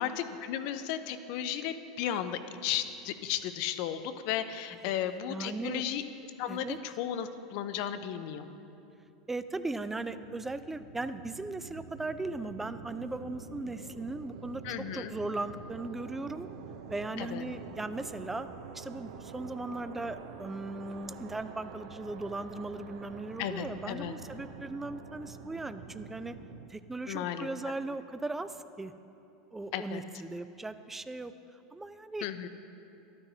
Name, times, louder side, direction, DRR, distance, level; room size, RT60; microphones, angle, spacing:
voice 1, 0.0-6.0 6.4-8.4 14.6-15.1 17.2-17.4 23.4-24.1 27.1-27.5 29.7-30.0 32.2-32.5, left 10 dB, 60° left, 11 dB, 0.5 m, -34 dB
voice 2, 5.3-5.8 6.5-6.8 9.3-16.5 16.9-18.5 18.7-26.4 26.7-28.9 29.5-31.3 31.7-32.5, right 2 dB, 10° right, 12 dB, 0.3 m, -38 dB
sound 1, 9.5-26.7, right 6 dB, 75° right, 0.6 m, -47 dB
12.0 x 9.6 x 2.7 m, 2.8 s
hypercardioid pair, 105°, 3 cm